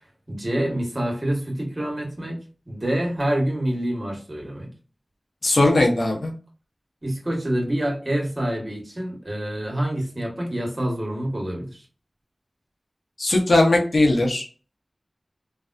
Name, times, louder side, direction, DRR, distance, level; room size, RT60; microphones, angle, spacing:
voice 1, 0.3-2.4 2.7-4.7 7.0-11.8, right 1 dB, 50° right, -1 dB, 1.5 m, -27 dB
voice 2, 5.4-6.3 13.2-14.4, left 2 dB, 90° left, -1 dB, 1.0 m, -19 dB
3.3 x 2.3 x 2.6 m, 0.36 s
wide cardioid pair, 40°, 0 cm